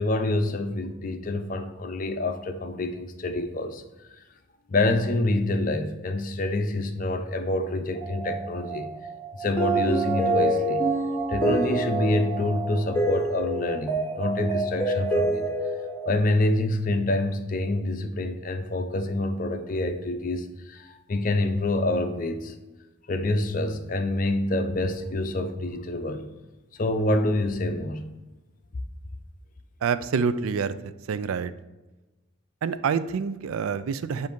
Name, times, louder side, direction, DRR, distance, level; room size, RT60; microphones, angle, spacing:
voice 1, 0.0-3.8 4.7-8.9 9.3-10.9 11.3-15.5 16.1-22.5 23.1-26.3 26.8-28.1, left 2 dB, 40° left, 8 dB, 0.5 m, -27 dB
sound 1, 7.9-16.1, right 2 dB, 10° left, 0.9 m, -27 dB
voice 2, 29.8-31.5 32.6-34.3, right 6 dB, 85° right, 13 dB, 0.4 m, -27 dB
7.9 x 2.7 x 5.1 m, 1.1 s
head